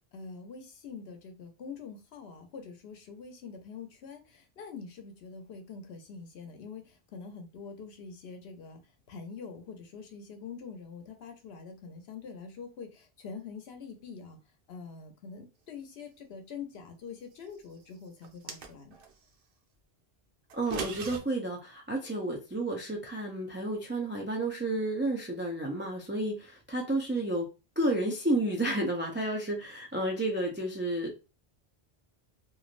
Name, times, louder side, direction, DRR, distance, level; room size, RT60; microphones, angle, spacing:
voice 1, 0.1-8.8 9.1-14.4 14.7-18.9, left 5 dB, 80° left, 5 dB, 0.9 m, -45 dB
sound 1, 18.2-19.1 20.5-21.2, right 6 dB, 65° right, 0.8 m, -38 dB
voice 2, 20.5-27.5 27.8-31.2, right 1 dB, 15° right, 0 dB, 0.4 m, -31 dB
3.1 x 2.5 x 2.4 m, 0.29 s
omnidirectional pair, 1.0 m